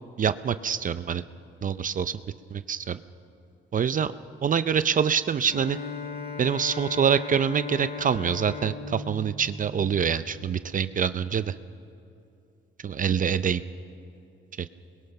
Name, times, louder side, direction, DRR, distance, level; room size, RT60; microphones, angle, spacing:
voice 1, 0.2-1.2 1.6-2.2 2.5-3.0 3.7-4.1 4.4-5.8 6.4-11.5 12.8-13.6, right 7 dB, 40° right, 13 dB, 0.6 m, -25 dB
Bowed string instrument, 5.4-10.7, left 4 dB, 50° left, 2.0 m, -38 dB
28.0 x 22.0 x 5.9 m, 2.7 s
cardioid pair, 90°, 20 cm